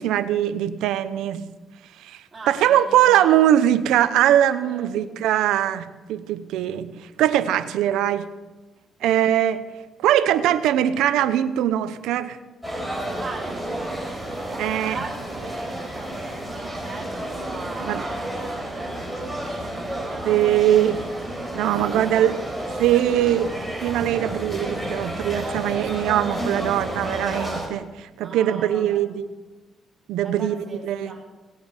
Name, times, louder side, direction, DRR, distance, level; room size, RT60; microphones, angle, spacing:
voice 1, 0.0-1.5 2.0-2.2 2.5-6.9 7.2-8.3 9.0-9.6 10.0-12.4 14.6-15.0 17.8-18.0 20.2-21.0 21.5-22.4 22.8-23.5 23.8-29.3 30.1-31.1, right 11 dB, 90° right, 13 dB, 0.9 m, -21 dB
voice 2, 2.3-3.4 4.6-5.0 9.0-9.2 13.0-21.1 21.7-23.5 26.5-27.0 28.2-29.0 30.2-31.2, right 3 dB, 30° right, -7 dB, 5.0 m, -40 dB
sound 1, 12.6-27.7, right 1 dB, 5° left, 4.8 m, -31 dB
18.5 x 9.2 x 8.2 m, 1.2 s
cardioid pair, 90°, 0 cm